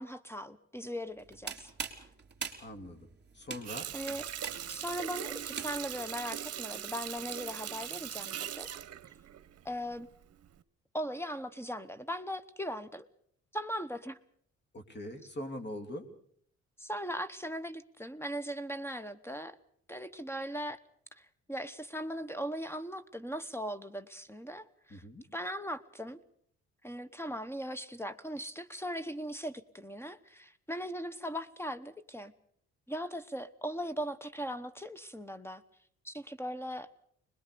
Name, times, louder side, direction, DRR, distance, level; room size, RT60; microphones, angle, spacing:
voice 1, 0.0-1.7 3.9-4.2 4.7-8.7 9.6-10.1 10.9-13.1 13.5-14.2 16.8-19.6 19.9-20.8 21.1-25.0 25.3-26.2 26.8-32.3 32.9-35.6 36.0-36.9, equal, 10° left, 14 dB, 1.1 m, -39 dB
sound 1, 1.2-6.1, right 6 dB, 35° right, 3.5 m, -43 dB
voice 2, 2.6-3.1 3.3-3.8 14.7-16.0 24.9-25.2, left 1 dB, 35° left, 8 dB, 3.3 m, -42 dB
Water tap faucet, 3.6-10.0 10.4-10.6, right 10 dB, 55° right, 1.0 m, -40 dB
22.0 x 20.5 x 6.8 m, 0.62 s
cardioid pair, 90°, 30 cm